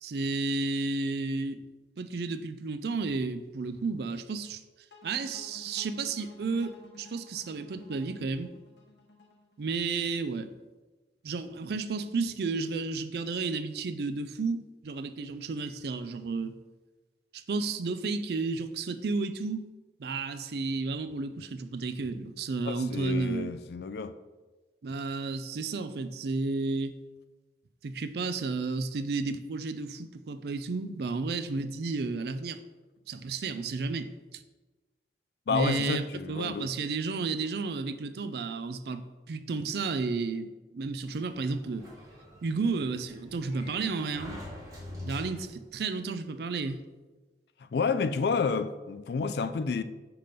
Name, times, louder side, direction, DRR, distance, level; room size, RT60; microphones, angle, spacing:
voice 1, 0.0-1.6 2.0-4.6 5.0-8.5 9.6-10.5 11.2-16.5 17.3-19.6 20.0-23.5 24.8-26.9 27.8-32.6 33.1-34.4 35.5-41.9 42.4-44.4 45.0-46.8, right 4 dB, 60° right, 0.4 m, -32 dB
sound 1, 4.9-10.0, left 3 dB, 80° left, 1.0 m, -53 dB
voice 2, 22.6-24.2 35.5-36.7 47.7-49.8, left 5 dB, 65° left, 0.3 m, -30 dB
Sliding door, 41.1-45.7, left 1 dB, 20° right, 1.5 m, -45 dB
5.8 x 3.4 x 5.1 m
head